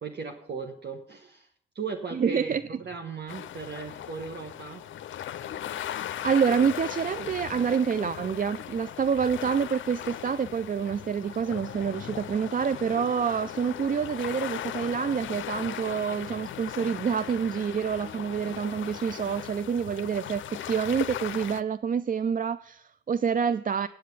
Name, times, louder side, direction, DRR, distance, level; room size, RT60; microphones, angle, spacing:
voice 1, 0.0-1.5 1.7-4.8, right 4 dB, 60° right, 1.1 m, -37 dB
voice 2, 2.1-2.6 5.8-5.9 6.2-23.9, right 7 dB, 45° right, 0.4 m, -27 dB
sound 1, 3.3-21.6, left 11 dB, 85° left, 0.4 m, -38 dB
8.4 x 7.6 x 8.1 m
cardioid pair, 45°, 19 cm